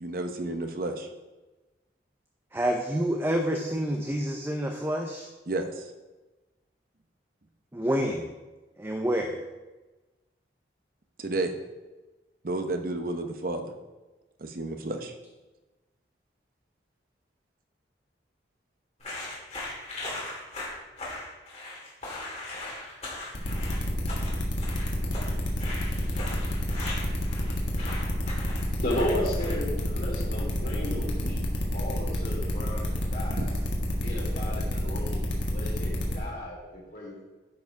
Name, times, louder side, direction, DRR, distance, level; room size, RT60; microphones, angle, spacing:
voice 1, 0.0-1.1 5.5-5.8 11.2-11.5 12.4-13.7 14.4-15.1 33.3-33.5, right 2 dB, 50° right, 6 dB, 0.8 m, -31 dB
voice 2, 2.5-5.3 7.7-8.3 8.8-9.4, equal, 15° right, 2 dB, 0.6 m, -28 dB
sound 1, 19.0-29.8, left 2 dB, 35° left, 2.4 m, -39 dB
sound 2, 23.3-36.2, left 1 dB, 85° left, 1.7 m, -29 dB
voice 3, 28.8-31.5 31.7-33.5 34.0-37.2, left 1 dB, 55° left, -3 dB, 3.0 m, -34 dB
10.5 x 4.8 x 4.7 m, 1.2 s
head